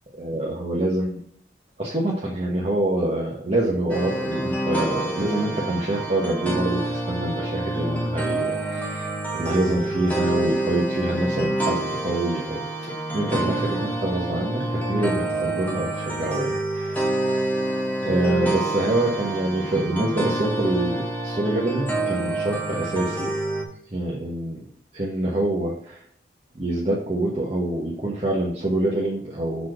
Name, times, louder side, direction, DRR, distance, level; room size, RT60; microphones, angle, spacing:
voice 1, 0.2-1.2 1.8-12.7 13.1-17.4 18.0-23.3 23.9-24.7 24.9-26.0 26.5-29.7, right 1 dB, 35° right, -4 dB, 1.0 m, -26 dB
sound 1, 3.9-23.6, right 1 dB, 10° left, 0.9 m, -27 dB
6.3 x 4.2 x 4.8 m, 0.64 s
head